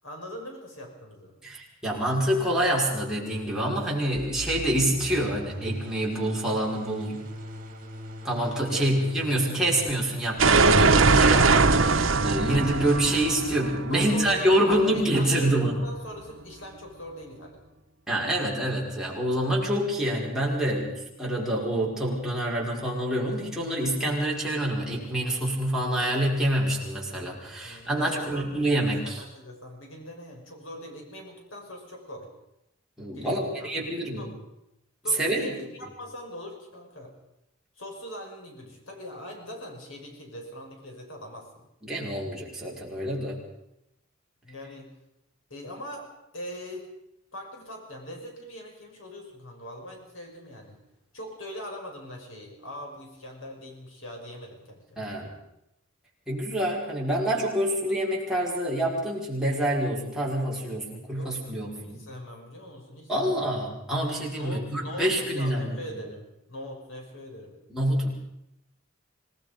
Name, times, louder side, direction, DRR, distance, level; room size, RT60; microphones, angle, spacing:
voice 1, 0.0-1.3 8.6-8.9 13.9-17.6 27.6-32.3 33.1-33.7 34.2-34.3 35.0-37.1 37.8-41.7 44.4-44.9 45.5-46.1 46.3-46.9 47.3-50.8 51.1-55.0 61.1-63.5 64.4-67.6, equal, 80° left, 1 dB, 5.9 m, -41 dB
voice 2, 1.4-7.3 8.2-15.8 18.1-29.2 33.0-34.3 35.2-35.5 41.8-43.4 55.0-55.3 56.3-62.1 63.1-65.8 67.7-68.1, right 1 dB, 5° right, -5 dB, 5.6 m, -27 dB
sound 1, 4.1-9.9, equal, 45° right, 3.6 m, -40 dB
sound 2, 10.4-15.2, right 4 dB, 75° right, 1.1 m, -21 dB
26.5 x 19.0 x 5.3 m, 0.85 s
head